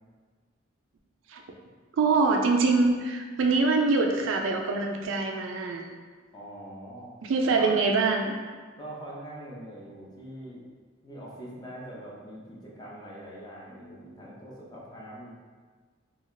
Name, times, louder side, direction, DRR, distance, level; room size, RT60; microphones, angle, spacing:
voice 1, 2.0-5.8 7.2-8.3, right 3 dB, 85° right, 2 dB, 0.4 m, -24 dB
voice 2, 6.3-7.1 7.6-7.7 8.8-10.7 11.0-15.3, right 1 dB, 20° left, -6 dB, 0.6 m, -43 dB
2.8 x 2.3 x 3.1 m, 1.5 s
head